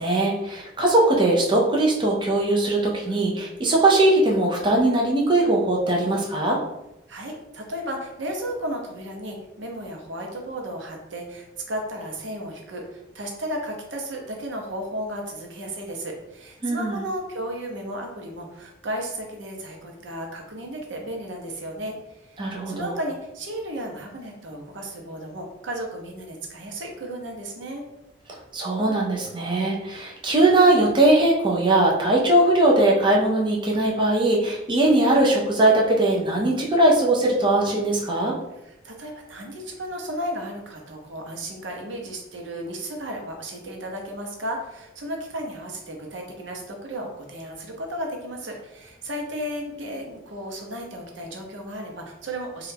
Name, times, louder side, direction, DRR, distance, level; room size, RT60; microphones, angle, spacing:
voice 1, 0.0-6.6 16.6-17.0 22.4-22.9 28.5-38.3, right 2 dB, 25° right, -2 dB, 0.5 m, -20 dB
voice 2, 7.1-27.8 38.5-52.7, right 1 dB, 85° right, 1 dB, 0.7 m, -34 dB
3.1 x 2.3 x 3.3 m, 0.90 s
head